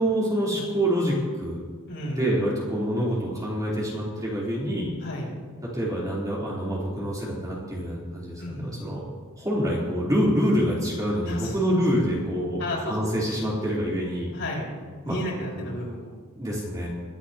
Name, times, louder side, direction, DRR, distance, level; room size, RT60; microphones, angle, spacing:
voice 1, 0.0-1.6 2.0-5.0 5.7-9.1 9.4-14.3 15.1-15.2 15.6-15.7 16.4-16.9, equal, 15° right, -6 dB, 3.4 m, -26 dB
voice 2, 1.9-2.3 5.0-5.3 8.4-8.9 11.3-11.8 12.6-13.1 14.3-14.7 15.0-16.2, left 1 dB, 60° left, -4 dB, 4.9 m, -33 dB
22.5 x 11.5 x 2.9 m, 1.5 s
head